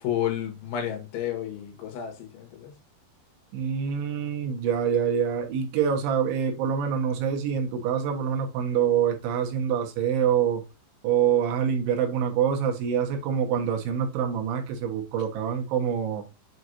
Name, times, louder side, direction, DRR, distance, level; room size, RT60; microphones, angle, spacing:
voice 1, 0.0-2.7, left 10 dB, 85° left, 4.0 m, -31 dB
voice 2, 3.5-10.6 11.0-16.3, right 8 dB, 85° right, 3.8 m, -25 dB
8.6 x 4.7 x 2.6 m
omnidirectional pair, 5.3 m